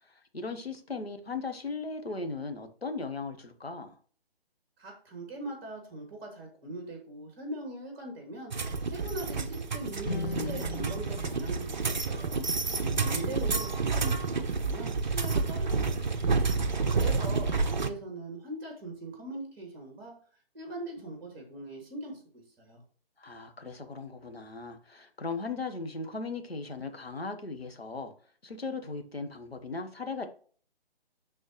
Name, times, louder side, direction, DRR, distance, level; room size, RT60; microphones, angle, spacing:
voice 1, 0.1-4.0 12.8-13.6 16.9-17.4 23.2-28.1 28.4-30.3, left 4 dB, 75° left, 1.4 m, -38 dB
voice 2, 4.8-8.5 8.9-12.5 13.0-16.3 16.9-20.1 20.5-22.8, right 2 dB, 20° right, 2.6 m, -41 dB
sound 1, 8.5-17.9, right 4 dB, 45° right, 0.8 m, -29 dB
sound 2, 10.0-13.3, left 3 dB, 60° left, 0.9 m, -40 dB
12.0 x 4.3 x 3.1 m
figure-of-eight pair, 140°, 31 cm